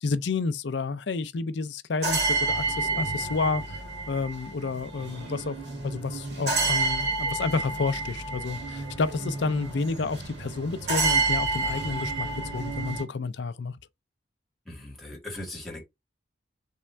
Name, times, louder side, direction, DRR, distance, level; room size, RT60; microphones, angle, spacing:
voice 1, 0.0-3.8 4.1-5.6 5.8-12.3 12.5-13.8, left 4 dB, 65° left, 0.5 m, -30 dB
sound 1, 2.0-13.0, right 3 dB, 60° right, 2.1 m, -29 dB
voice 2, 14.6-15.8, left 1 dB, ahead, 1.6 m, -39 dB
3.6 x 3.2 x 4.3 m
head